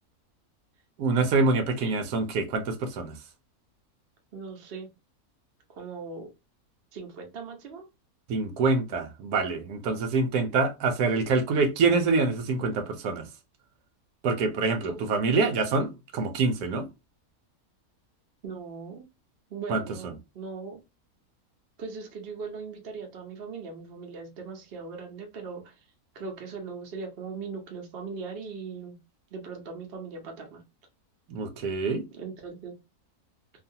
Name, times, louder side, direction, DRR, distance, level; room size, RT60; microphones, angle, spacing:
voice 1, 1.0-3.2 8.3-13.3 14.2-16.9 19.7-19.8 31.3-32.0, right 4 dB, 85° right, 1.1 m, -25 dB
voice 2, 4.3-4.9 5.7-6.3 6.9-7.9 14.9-15.0 18.4-19.0 19.5-20.8 21.8-25.9 26.1-29.0 29.3-30.6 32.1-32.7, right 5 dB, 50° right, 0.8 m, -39 dB
2.7 x 2.4 x 2.6 m
omnidirectional pair, 1.6 m